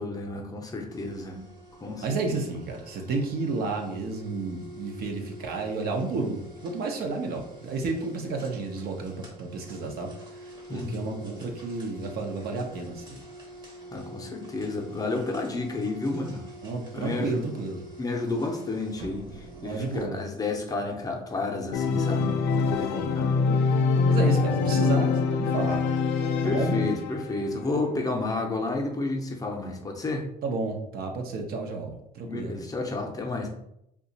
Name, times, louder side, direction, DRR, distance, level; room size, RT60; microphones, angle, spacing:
voice 1, 0.0-1.5 1.8-2.4 10.7-11.2 13.9-16.4 16.9-17.4 18.0-23.3 26.4-30.3 32.2-33.5, left 2 dB, 20° left, 1 dB, 0.6 m, -31 dB
sound 1, 0.9-20.1, right 1 dB, 25° right, 0.8 m, -46 dB
voice 2, 2.0-10.1 10.4-13.2 16.6-17.8 19.6-20.2 22.9-23.2 24.1-25.8 26.4-26.8 30.4-32.6, right 3 dB, 65° right, 3 dB, 0.7 m, -31 dB
Organ, 21.7-27.4, left 4 dB, 90° left, 0.4 m, -24 dB
2.7 x 2.3 x 3.9 m, 0.78 s
cardioid pair, 110°, 17 cm